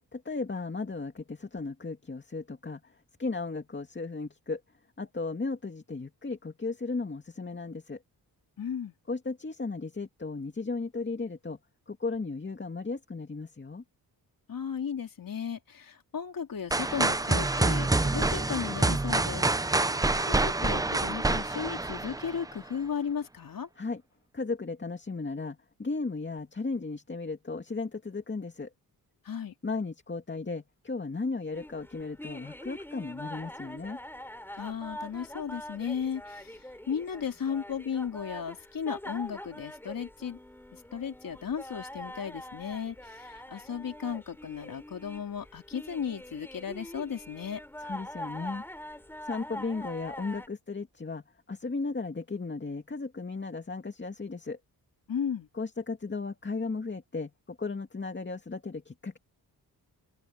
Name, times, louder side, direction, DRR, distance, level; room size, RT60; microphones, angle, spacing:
voice 1, 0.1-4.6 5.0-8.0 9.1-11.6 11.9-13.8 23.8-24.0 24.3-28.7 29.6-34.0 47.8-48.6 49.2-54.6 55.5-59.2, left 3 dB, 30° left, 2.4 m, -35 dB
voice 2, 8.6-8.9 14.5-19.9 20.2-23.7 29.2-29.5 34.6-36.6 36.9-40.4 40.7-47.6 55.1-55.5, left 7 dB, 60° left, 3.7 m, -35 dB
sound 1, 16.7-22.6, right 2 dB, 10° right, 0.5 m, -27 dB
sound 2, 31.5-50.5, left 1 dB, 5° left, 4.9 m, -44 dB
open air
cardioid pair, 80°, 38 cm